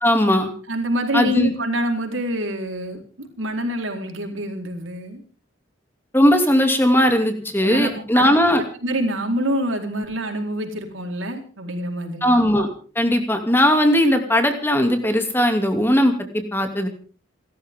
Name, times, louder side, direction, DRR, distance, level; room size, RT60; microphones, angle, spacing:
voice 1, 0.0-0.5 1.1-1.5 6.1-8.6 12.2-12.7 13.0-16.1 16.5-16.9, equal, 10° left, 5 dB, 2.7 m, -18 dB
voice 2, 0.7-5.2 7.6-8.3 8.8-12.3, equal, 80° right, 3 dB, 4.3 m, -26 dB
28.5 x 13.5 x 3.7 m, 0.40 s
head